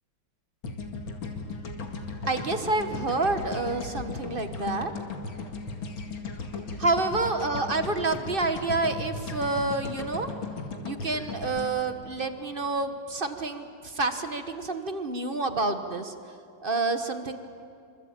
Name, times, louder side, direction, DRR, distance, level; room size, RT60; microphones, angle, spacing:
sound 1, 0.6-12.9, left 3 dB, 85° left, 2.9 m, -37 dB
voice 1, 2.3-4.9 6.8-10.3 10.8-16.1 16.6-17.4, right 3 dB, 30° right, 8 dB, 1.4 m, -28 dB
26.0 x 26.0 x 9.0 m, 2.5 s
omnidirectional pair, 2.1 m